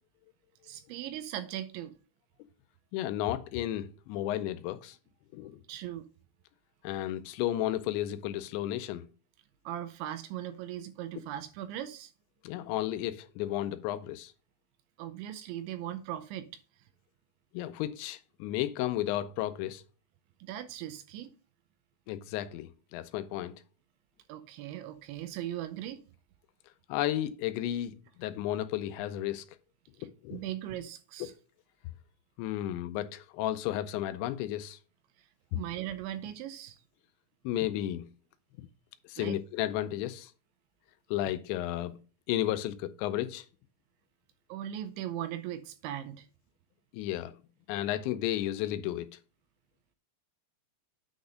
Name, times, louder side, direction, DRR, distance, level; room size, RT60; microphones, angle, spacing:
voice 1, 0.6-1.9 5.7-6.1 9.7-12.1 15.0-16.5 20.4-21.3 24.3-26.0 30.3-31.3 35.5-36.8 39.2-39.4 44.5-46.3, right 12 dB, 80° right, 2.9 m, -39 dB
voice 2, 2.9-5.0 5.3-5.6 6.8-9.1 12.4-14.3 17.5-19.8 22.1-23.5 26.9-29.5 30.2-30.4 32.4-34.8 37.5-38.1 38.6-38.7 39.1-40.3 41.1-42.0 42.3-43.5 46.9-47.4 47.7-49.1, left 13 dB, 85° left, 2.8 m, -33 dB
9.5 x 4.1 x 5.0 m
omnidirectional pair, 5.4 m